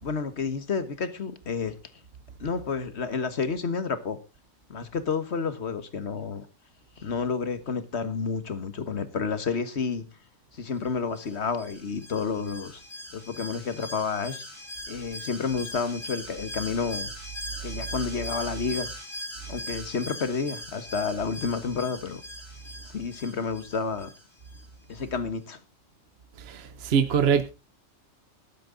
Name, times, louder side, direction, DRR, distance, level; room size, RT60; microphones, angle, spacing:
voice 1, 0.0-1.7 2.4-4.2 4.7-6.5 7.0-10.0 10.5-12.8 13.1-14.4 14.9-17.1 17.6-18.9 19.5-22.2 22.8-24.1 24.9-25.6, left 5 dB, 55° left, 1.7 m, -30 dB
Alarm, 11.1-24.6 24.9-25.0, equal, 70° left, 5.3 m, -40 dB
voice 2, 26.4-27.5, right 7 dB, 55° right, 1.0 m, -24 dB
13.0 x 12.0 x 3.9 m
omnidirectional pair, 1.4 m